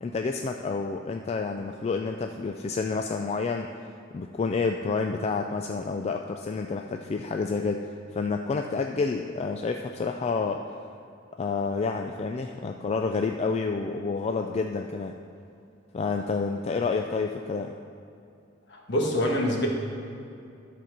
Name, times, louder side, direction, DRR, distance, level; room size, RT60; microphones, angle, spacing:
voice 1, 0.0-3.7 4.1-10.6 11.4-15.1 15.9-17.7, left 4 dB, 35° left, 4 dB, 0.3 m, -29 dB
voice 2, 18.7-19.7, left 1 dB, 60° left, 0 dB, 1.4 m, -25 dB
11.5 x 4.3 x 5.9 m, 2.6 s
head